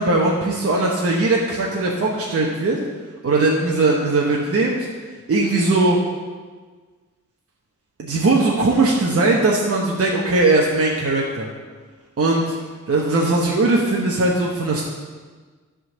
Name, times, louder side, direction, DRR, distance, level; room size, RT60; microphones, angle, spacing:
voice 1, 0.0-2.8 3.2-4.9 5.3-6.0 8.0-11.5 12.2-12.6 12.9-14.8, right 2 dB, 50° right, -2 dB, 1.0 m, -19 dB
11.0 x 3.9 x 6.5 m, 1.4 s
wide cardioid pair, 140°, 30 cm